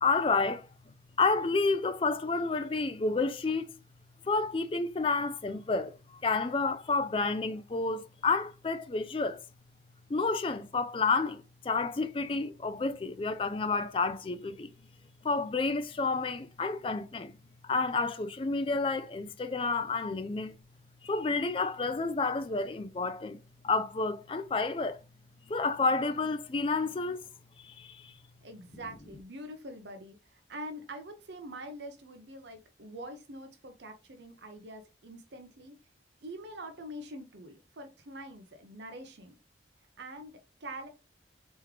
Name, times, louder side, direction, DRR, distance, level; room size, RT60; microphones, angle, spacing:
voice 1, 0.0-0.7 1.2-3.7 4.2-6.0 6.2-9.4 10.1-14.7 15.2-17.3 17.6-20.6 21.0-25.0 25.5-27.3 27.6-28.1, left 3 dB, 30° left, 0.3 m, -30 dB
voice 2, 28.4-35.8 36.2-39.3 40.0-40.9, right 1 dB, 70° right, 0.7 m, -45 dB
3.5 x 3.1 x 3.2 m
head